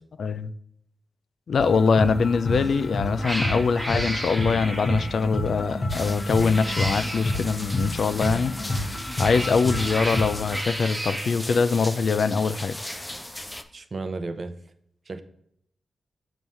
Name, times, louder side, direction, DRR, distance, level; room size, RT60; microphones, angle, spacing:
voice 1, 0.2-0.5 1.5-8.5 8.9-12.8, left 5 dB, 65° left, 0.3 m, -23 dB
sound 1, 1.6-10.6, left 1 dB, 50° left, 1.0 m, -30 dB
Cat, 2.5-2.8 3.2-5.2 6.3-7.4 8.8-11.3, right 1 dB, 10° right, 1.0 m, -33 dB
sound 2, 5.9-13.6, left 1 dB, 15° left, 0.5 m, -38 dB
voice 2, 13.7-14.6 15.1-15.2, right 3 dB, 45° right, 0.6 m, -33 dB
7.0 x 3.1 x 5.4 m
cardioid pair, 80°, 0 cm